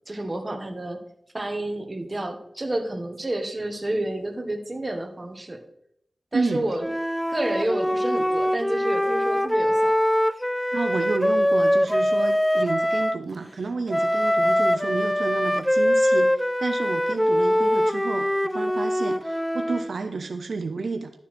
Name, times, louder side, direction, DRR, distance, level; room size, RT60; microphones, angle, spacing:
voice 1, 0.1-1.0 1.3-5.6 6.3-6.9 7.3-9.9 14.3-14.6, right 1 dB, 25° right, 4 dB, 1.6 m, -30 dB
voice 2, 6.3-6.7 10.7-18.3 18.5-21.1, right 4 dB, 75° right, 6 dB, 0.7 m, -30 dB
Wind instrument woodwind instrument, 6.8-13.2 13.9-19.9, equal, 5° left, 0.3 m, -23 dB
12.0 x 6.9 x 4.4 m, 0.73 s
wide cardioid pair, 95°, 0 cm